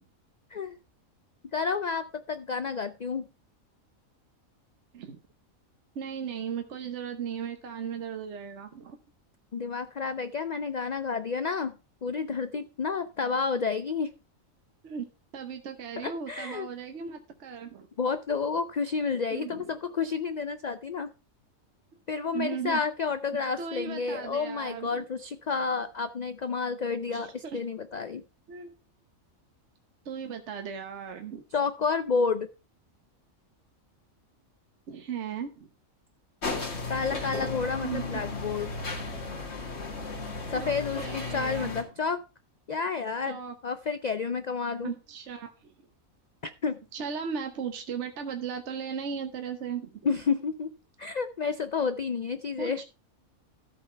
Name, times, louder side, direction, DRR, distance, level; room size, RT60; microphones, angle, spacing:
voice 1, 1.5-3.3 9.5-14.1 16.0-16.7 18.0-21.1 22.1-28.2 31.5-32.5 36.9-38.7 40.5-42.2 42.7-44.9 46.4-46.8 50.0-50.7 51.0-52.8, left 5 dB, 85° left, 11 dB, 0.3 m, -30 dB
voice 2, 5.9-9.0 14.8-15.1 15.3-17.9 19.3-19.7 22.3-22.8 23.3-25.0 27.1-27.6 28.5-28.8 30.0-31.4 34.9-35.7 37.8-38.0 40.5-40.7 41.0-41.7 43.3-43.5 44.8-45.7 46.9-50.0 52.6-52.8, right 7 dB, 60° right, 6 dB, 1.2 m, -36 dB
sound 1, 36.4-41.8, left 3 dB, 50° left, 2.0 m, -35 dB
13.5 x 5.6 x 4.4 m, 0.32 s
omnidirectional pair, 1.4 m